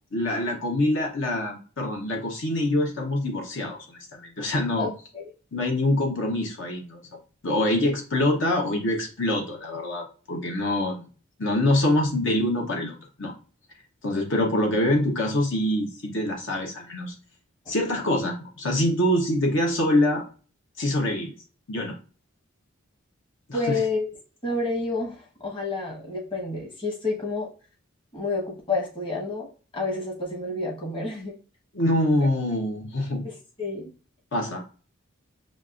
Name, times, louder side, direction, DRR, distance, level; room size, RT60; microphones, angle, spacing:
voice 1, 0.1-4.9 5.5-7.0 7.4-11.1 11.4-13.3 14.0-17.1 17.7-20.2 20.8-21.3 21.7-21.9 23.5-23.8 31.7-33.3 34.3-34.6, left 1 dB, 60° left, 1 dB, 1.0 m, -25 dB
voice 2, 4.8-5.3 17.6-17.7 23.5-24.1 24.4-27.5 28.1-29.5 29.7-31.3 33.2-33.9, left 3 dB, 25° left, -2 dB, 1.1 m, -29 dB
7.3 x 2.5 x 2.5 m, 0.38 s
head